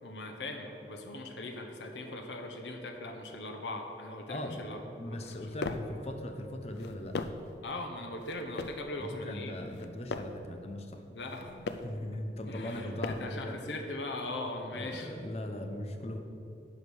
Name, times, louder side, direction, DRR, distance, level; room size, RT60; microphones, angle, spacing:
voice 1, 0.0-6.0 7.6-9.5 11.1-11.7 12.4-15.3, left 2 dB, 85° left, 3 dB, 0.9 m, -40 dB
voice 2, 4.3-4.6 5.0-7.2 9.0-11.0 11.8-13.6 14.7-16.2, left 1 dB, 35° left, 5 dB, 0.8 m, -39 dB
sound 1, 5.2-6.0 6.7-7.6 8.2-8.9 9.6-10.5 11.2-12.0 12.6-13.4, left 3 dB, 70° left, 0.5 m, -40 dB
10.5 x 5.0 x 6.3 m, 2.7 s
head